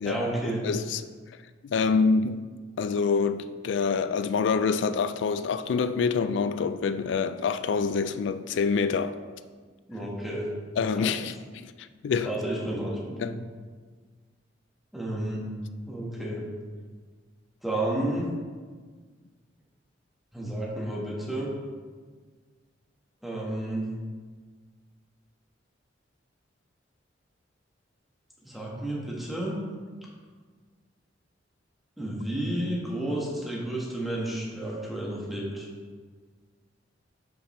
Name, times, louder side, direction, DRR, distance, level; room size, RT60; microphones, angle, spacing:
voice 1, 0.0-0.7 9.9-10.5 10.9-11.1 12.2-13.3 14.9-15.4 15.9-16.4 17.6-18.3 20.3-21.5 23.2-23.9 28.4-29.5 32.0-35.7, right 1 dB, ahead, 1.2 m, -31 dB
voice 2, 0.6-1.0 1.6-2.4 2.8-9.2 10.8-12.3 13.2-13.3, left 5 dB, 70° left, 0.3 m, -26 dB
5.7 x 5.1 x 4.2 m
head